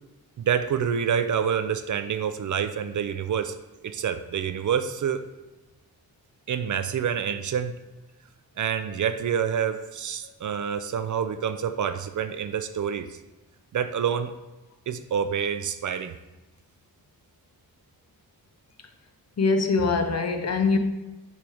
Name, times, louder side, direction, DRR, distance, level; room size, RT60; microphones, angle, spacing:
voice 1, 0.4-3.5 3.8-5.2 6.5-7.8 8.6-13.1 13.7-14.3 14.9-16.1, right 8 dB, 55° right, 10 dB, 0.4 m, -27 dB
voice 2, 19.4-20.8, left 4 dB, 45° left, 6 dB, 0.7 m, -23 dB
6.8 x 3.2 x 4.8 m, 1.0 s
wide cardioid pair, 105°, 37 cm